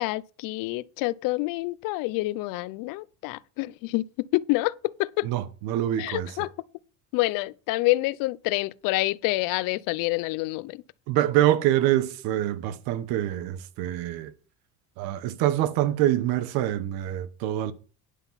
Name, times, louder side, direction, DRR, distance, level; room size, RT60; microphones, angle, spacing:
voice 1, 0.0-5.3 6.0-6.5 7.1-10.8, left 20 dB, 70° left, 0.5 m, -27 dB
voice 2, 5.2-6.3 11.1-14.3 15.0-17.7, right 13 dB, 85° right, 1.1 m, -25 dB
10.0 x 5.8 x 5.7 m
cardioid pair, 170°, 35 cm